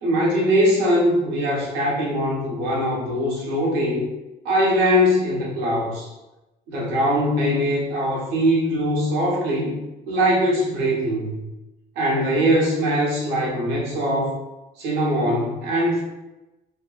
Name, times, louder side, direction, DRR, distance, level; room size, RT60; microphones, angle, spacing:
voice 1, 0.0-4.1 4.4-6.1 6.7-9.8 10.1-11.4 12.0-14.4 14.8-16.0, equal, 90° right, -4 dB, 0.9 m, -21 dB
2.6 x 2.1 x 2.4 m, 1.0 s
cardioid pair, 110°, 17 cm